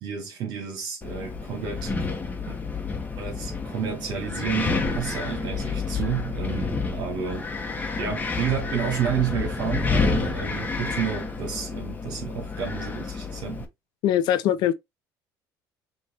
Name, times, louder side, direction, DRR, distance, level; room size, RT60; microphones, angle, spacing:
voice 1, 0.0-2.1 2.5-2.6 3.2-7.5 7.7-13.7, right 8 dB, 65° right, 1.4 m, -31 dB
Wind, 1.0-13.6, left 4 dB, 20° left, 1.1 m, -29 dB
voice 2, 14.0-14.7, left 11 dB, 65° left, 0.7 m, -21 dB
5.7 x 2.6 x 3.5 m
supercardioid pair, 105°, 8 cm